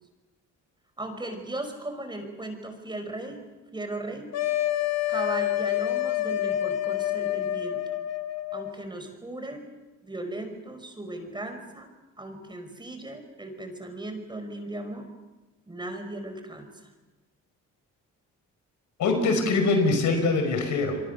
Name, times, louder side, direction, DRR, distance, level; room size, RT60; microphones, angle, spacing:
voice 1, 1.0-3.4 3.7-4.3 5.1-8.0 8.5-9.6 10.0-11.9 12.2-15.1 15.7-16.7, right 1 dB, 15° right, 6 dB, 5.3 m, -37 dB
sound 1, 4.3-8.7, left 13 dB, 60° left, 1.6 m, -28 dB
voice 2, 19.0-21.0, left 3 dB, 75° left, 6 dB, 5.5 m, -23 dB
28.5 x 23.5 x 6.6 m, 1.1 s
cardioid pair, 90°, 30 cm